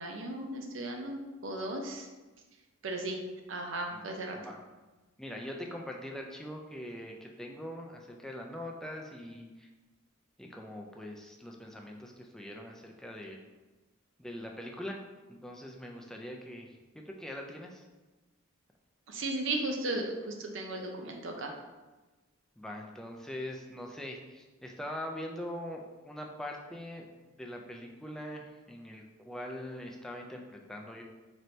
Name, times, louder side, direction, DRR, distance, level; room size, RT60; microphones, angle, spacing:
voice 1, 0.0-2.1 2.8-3.2 3.5-4.4 19.1-21.5, right 2 dB, 70° right, 2 dB, 0.6 m, -35 dB
voice 2, 5.2-9.7 10.4-13.4 14.2-15.0 15.3-17.9 22.6-27.1 27.4-31.0, left 1 dB, 5° left, 0 dB, 0.3 m, -42 dB
4.3 x 2.6 x 3.2 m, 1.2 s
head